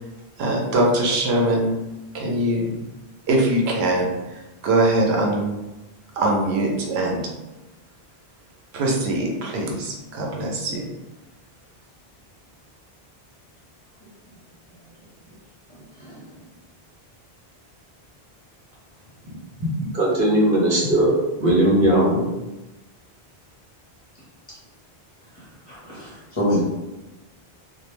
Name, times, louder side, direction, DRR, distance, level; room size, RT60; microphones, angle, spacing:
voice 1, 0.4-1.7 2.1-2.8 3.3-5.6 6.2-7.2 8.7-10.9, right 1 dB, 90° right, -1 dB, 0.8 m, -22 dB
voice 2, 15.7-16.3 25.3-26.6, left 1 dB, 35° left, -7 dB, 0.7 m, -28 dB
voice 3, 19.9-22.2, right 1 dB, 60° right, -4 dB, 0.9 m, -18 dB
2.3 x 2.0 x 3.0 m, 1.0 s
omnidirectional pair, 1.0 m